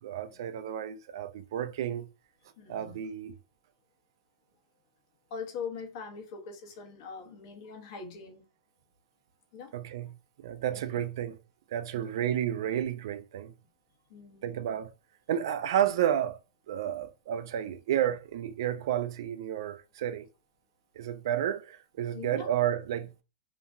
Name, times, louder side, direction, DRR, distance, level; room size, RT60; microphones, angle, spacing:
voice 1, 0.0-2.1 2.7-3.3 9.7-10.1 10.4-11.4 11.7-13.5 14.4-14.9 15.3-16.4 16.7-20.3 21.0-23.1, right 10 dB, 70° right, 0.4 m, -31 dB
voice 2, 2.6-3.0 5.3-8.5 9.5-9.7 10.6-11.0 11.9-12.2 14.1-14.6 22.1-22.5, left 5 dB, 60° left, 1.0 m, -42 dB
2.8 x 2.4 x 2.5 m
hypercardioid pair, 110°, 2 cm